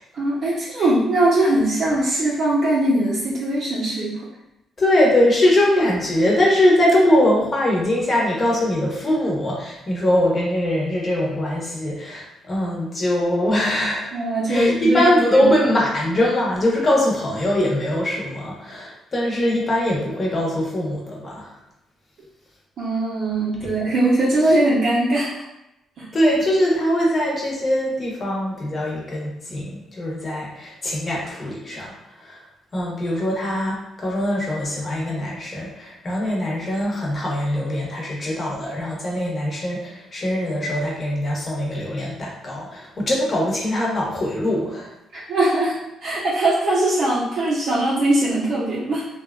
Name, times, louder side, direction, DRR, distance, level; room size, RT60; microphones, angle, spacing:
voice 1, 0.1-4.2 14.1-15.0 15.3-15.5 22.8-25.4 26.0-26.1 45.1-45.8 46.0-49.0, right 1 dB, 65° right, -8 dB, 0.6 m, -21 dB
voice 2, 4.8-14.1 14.5-21.5 23.6-23.7 26.1-32.5 32.7-44.9, left 1 dB, 35° left, -3 dB, 0.9 m, -22 dB
2.9 x 2.3 x 2.3 m, 0.88 s
cardioid pair, 90°, 0 cm